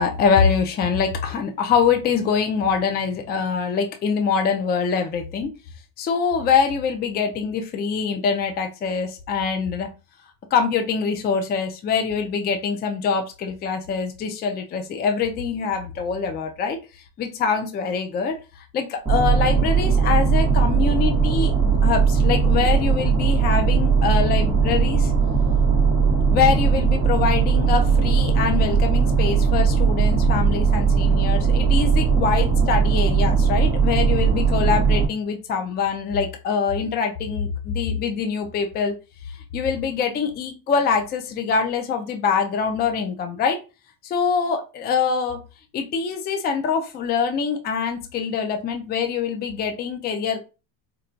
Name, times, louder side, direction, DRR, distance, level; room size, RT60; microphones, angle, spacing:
voice 1, 0.0-5.5 6.0-9.9 10.5-16.8 17.2-18.4 18.7-25.1 26.3-38.9 39.5-43.6 44.0-45.4 45.7-50.4, left 6 dB, 20° left, 5 dB, 0.4 m, -24 dB
sound 1, 19.0-35.1, right 5 dB, 10° right, 0.9 m, -19 dB
4.4 x 2.3 x 2.5 m, 0.30 s
supercardioid pair, 125°, 50 cm